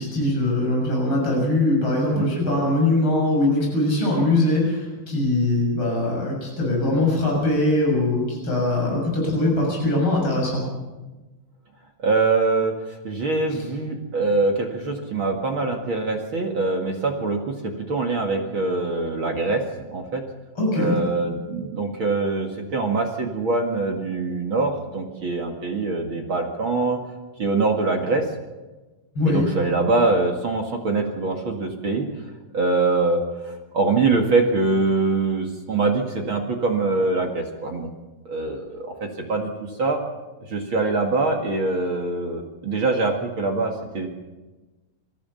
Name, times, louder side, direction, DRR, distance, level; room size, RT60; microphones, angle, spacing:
voice 1, 0.0-10.6 13.5-13.7 20.6-21.0 29.1-29.4, left 2 dB, 35° left, -2 dB, 7.7 m, -22 dB
voice 2, 12.0-19.6 19.9-20.2 20.7-27.0 27.4-28.3 29.3-32.1 32.5-37.9 38.3-40.0 40.5-44.1, right 3 dB, 40° right, 2 dB, 2.3 m, -23 dB
28.0 x 14.0 x 7.0 m, 1.2 s
omnidirectional pair, 4.1 m